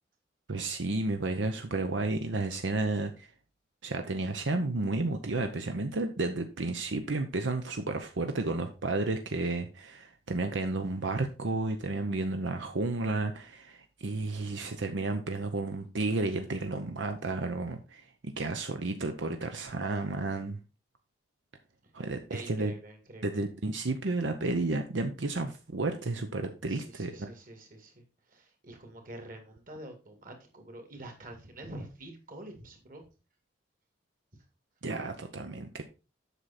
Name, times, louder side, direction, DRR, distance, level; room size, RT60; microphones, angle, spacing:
voice 1, 0.5-3.3 3.8-20.6 21.9-22.7 23.2-27.3 34.8-35.8, right 2 dB, 85° right, 7 dB, 0.8 m, -32 dB
voice 2, 22.3-23.4 26.7-33.1, right 1 dB, 45° right, 4 dB, 2.3 m, -46 dB
8.2 x 6.2 x 4.2 m, 0.32 s
head